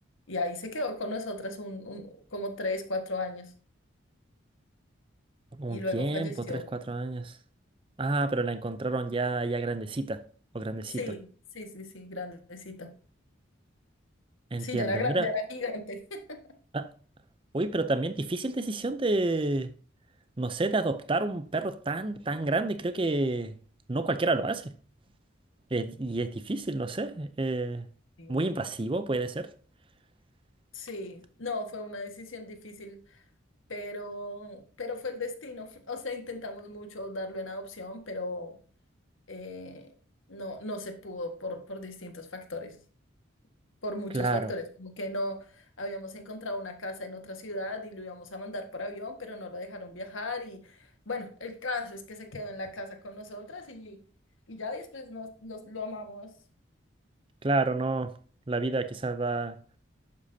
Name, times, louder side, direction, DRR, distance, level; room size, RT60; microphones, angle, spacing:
voice 1, 0.3-3.5 5.7-6.7 10.9-11.3 11.5-12.9 14.6-16.4 28.2-28.4 30.7-33.0 33.7-38.5 39.3-39.9 40.3-42.8 43.8-54.0 54.5-56.3, left 2 dB, 80° left, 1.6 m, -36 dB
voice 2, 5.5-7.4 8.0-10.2 10.5-11.0 14.5-15.3 16.7-16.9 17.5-19.7 20.4-23.5 23.9-24.7 25.7-27.9 28.3-29.5 44.1-44.5 57.4-58.2 58.5-59.5, right 2 dB, 25° right, 0.5 m, -29 dB
11.5 x 8.3 x 2.8 m
head